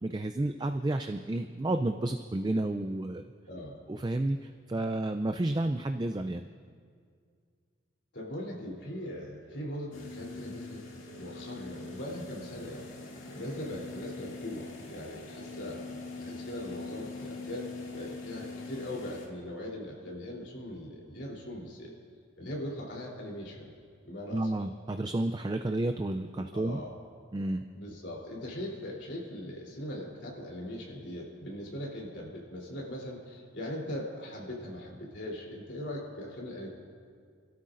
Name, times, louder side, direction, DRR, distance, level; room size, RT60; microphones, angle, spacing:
voice 1, 0.0-3.2 3.9-6.4 24.3-26.8 27.3-27.6, right 2 dB, 20° right, 7 dB, 0.3 m, -31 dB
voice 2, 8.1-10.8 11.2-12.8 13.3-15.9 16.2-21.9 22.4-23.7 24.0-24.5 25.7-25.8 26.5-27.0 27.7-36.7, left 1 dB, 60° left, -3 dB, 3.3 m, -40 dB
sound 1, 8.8-10.0 11.1-12.2 13.3-14.4 15.5-15.7, left 1 dB, 85° right, 1.3 m, -51 dB
sound 2, 9.9-19.3, left 3 dB, 80° left, 2.1 m, -43 dB
29.0 x 13.0 x 2.5 m, 2.1 s
head